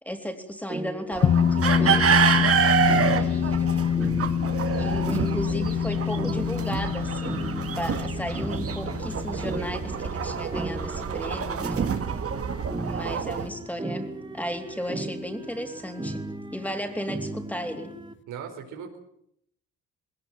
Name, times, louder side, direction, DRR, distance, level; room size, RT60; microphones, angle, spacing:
voice 1, 0.0-2.6 3.2-4.0 4.8-7.4 7.8-12.0 12.9-16.2 16.5-17.9, equal, 5° left, 5 dB, 3.5 m, -35 dB
sound 1, 0.7-18.1, right 2 dB, 15° right, 1.5 m, -36 dB
sound 2, 1.1-13.5, right 7 dB, 50° right, 2.1 m, -27 dB
sound 3, 1.2-11.9, left 8 dB, 40° left, 0.8 m, -26 dB
voice 2, 18.3-19.0, right 7 dB, 90° right, 5 dB, 4.4 m, -38 dB
20.5 x 18.5 x 9.1 m, 0.72 s
cardioid pair, 90°, 30 cm